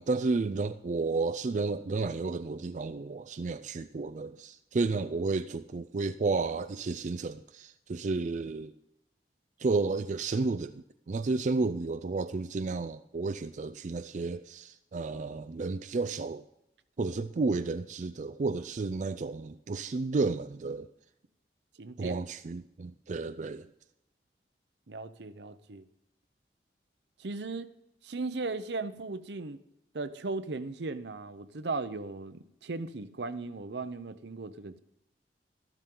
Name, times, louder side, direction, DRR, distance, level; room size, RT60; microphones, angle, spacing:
voice 1, 0.0-8.7 9.6-16.5 17.0-20.9 22.0-23.7, right 3 dB, 45° right, 11 dB, 0.4 m, -32 dB
voice 2, 21.8-22.2 24.9-25.8 27.2-27.7 28.0-29.6 29.9-34.8, right 3 dB, 75° right, 12 dB, 0.7 m, -37 dB
13.0 x 12.0 x 3.8 m, 0.82 s
head